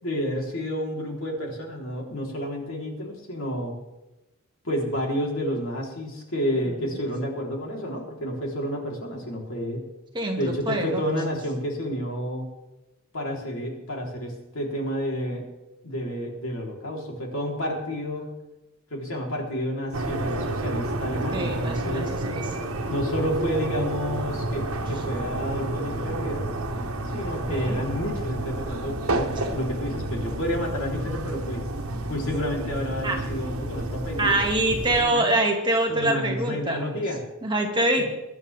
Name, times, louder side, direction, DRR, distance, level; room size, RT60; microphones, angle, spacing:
voice 1, 0.0-3.7 4.6-9.8 10.4-12.5 13.1-15.4 15.8-18.3 18.9-22.1 22.9-26.5 27.1-31.7 32.1-34.4 34.7-35.3 35.9-37.2 38.0-38.1, equal, 70° left, -1 dB, 3.8 m, -30 dB
voice 2, 10.1-11.0 21.3-22.4 27.5-27.8 33.0-33.2 34.2-36.8 37.4-38.0, right 1 dB, 20° right, 0 dB, 2.1 m, -25 dB
sound 1, 19.9-35.0, right 2 dB, 80° right, 1.4 m, -30 dB
23.5 x 11.0 x 3.5 m, 1.0 s
head